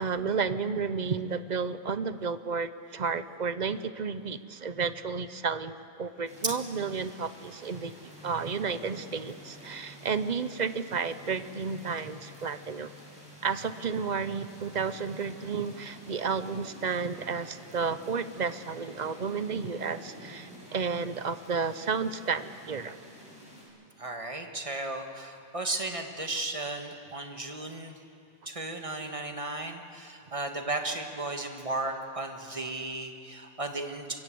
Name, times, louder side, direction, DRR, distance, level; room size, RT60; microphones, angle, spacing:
voice 1, 0.0-7.9 8.2-12.9 13.4-23.0, right 5 dB, 45° right, 13 dB, 0.7 m, -32 dB
sound 1, 6.2-23.6, equal, 5° right, 8.0 m, -50 dB
voice 2, 24.0-27.9 28.4-34.2, right 2 dB, 25° right, 4 dB, 1.8 m, -35 dB
25.0 x 22.5 x 7.8 m, 2.5 s
omnidirectional pair, 1.2 m